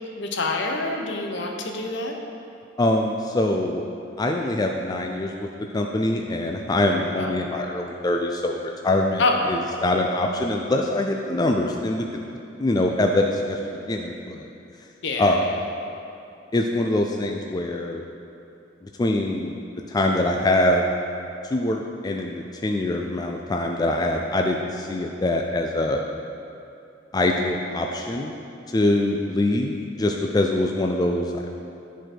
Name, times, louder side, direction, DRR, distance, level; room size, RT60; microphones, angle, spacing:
voice 1, 0.2-2.2 7.2-7.4 9.2-9.5 15.0-15.6, left 3 dB, 65° left, 2 dB, 0.8 m, -26 dB
voice 2, 2.8-3.8 4.2-5.5 5.7-12.1 12.6-14.5 15.2-15.6 16.5-18.0 18.8-19.5 19.9-20.8 21.5-26.0 27.1-28.3 28.7-31.4, left 1 dB, 20° left, 2 dB, 0.3 m, -24 dB
10.0 x 4.6 x 4.4 m, 2.6 s
head